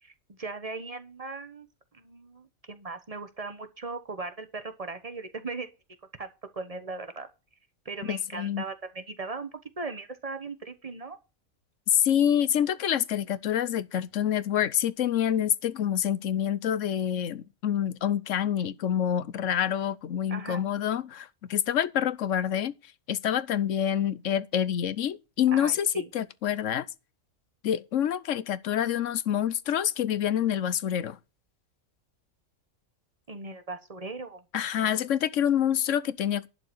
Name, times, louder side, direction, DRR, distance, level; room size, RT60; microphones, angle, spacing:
voice 1, 0.0-1.7 1.9-5.7 6.2-7.3 7.8-11.2 20.3-20.6 25.5-26.1 33.3-34.4 34.7-34.9, right 3 dB, 30° right, 1.2 m, -38 dB
voice 2, 8.0-8.6 11.9-22.7 23.1-26.9 27.6-31.2 34.5-36.5, left 10 dB, 65° left, 1.1 m, -27 dB
11.5 x 4.9 x 7.7 m
omnidirectional pair, 1.4 m